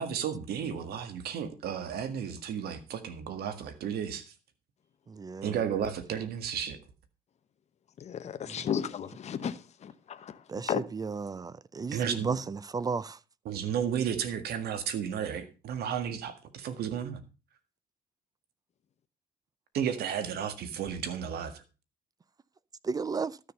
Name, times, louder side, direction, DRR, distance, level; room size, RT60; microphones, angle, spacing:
voice 1, 0.0-4.2 5.4-6.8 11.9-12.4 13.5-17.2 19.7-21.6, right 8 dB, 70° right, 1.9 m, -33 dB
voice 2, 5.1-5.6 8.5-8.6 10.5-13.2 22.8-23.4, right 4 dB, 20° right, 0.5 m, -34 dB
voice 3, 8.0-10.8, left 8 dB, 40° left, 0.9 m, -34 dB
12.5 x 6.8 x 5.4 m
cardioid pair, 110°, 17 cm